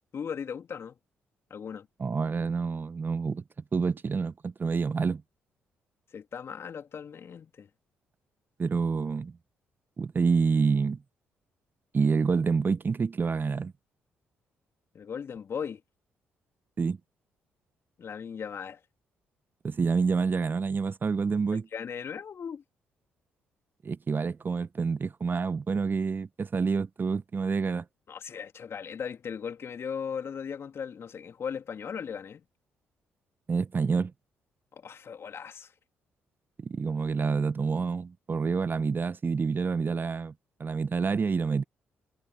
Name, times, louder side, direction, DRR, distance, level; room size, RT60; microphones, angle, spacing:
voice 1, 0.1-1.0 1.5-1.9 6.1-7.7 14.9-15.8 18.0-18.8 21.5-22.6 28.1-32.4 34.7-35.7, left 7 dB, 50° left, 3.0 m, -37 dB
voice 2, 2.0-3.4 3.7-5.2 8.6-9.3 10.0-11.0 11.9-13.7 16.8-17.0 19.6-21.7 23.8-27.8 33.5-34.1 36.6-40.3 40.6-41.6, right 5 dB, 40° right, 1.1 m, -28 dB
hypercardioid pair, 45°, 5 cm